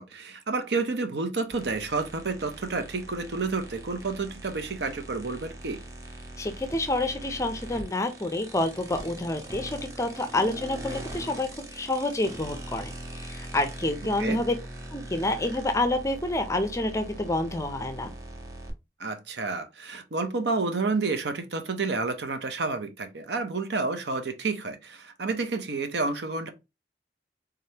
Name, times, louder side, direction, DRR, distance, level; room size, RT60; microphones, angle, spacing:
voice 1, 0.0-5.8 14.2-14.4 19.0-26.5, right 3 dB, 75° right, 0.7 m, -30 dB
sound 1, 1.5-18.7, right 1 dB, 20° right, 0.7 m, -41 dB
voice 2, 6.4-14.6 14.9-18.1, left 2 dB, 15° left, 0.5 m, -28 dB
3.6 x 3.4 x 2.8 m
head